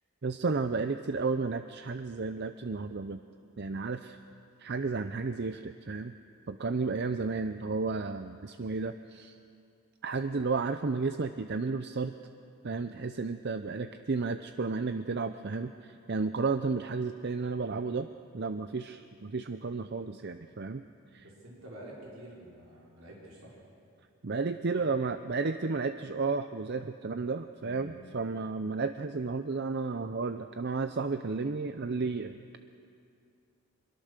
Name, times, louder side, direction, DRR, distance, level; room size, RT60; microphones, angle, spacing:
voice 1, 0.2-3.2 3.6-4.2 4.6-6.1 6.5-9.4 10.0-12.1 12.6-18.1 18.3-20.8 21.1-21.2 24.2-32.6, right 4 dB, 50° right, 9 dB, 0.6 m, -32 dB
voice 2, 21.2-23.6 24.7-24.9 27.6-27.9, right 1 dB, 65° right, -5 dB, 5.0 m, -48 dB
25.0 x 22.5 x 6.7 m, 2.5 s
head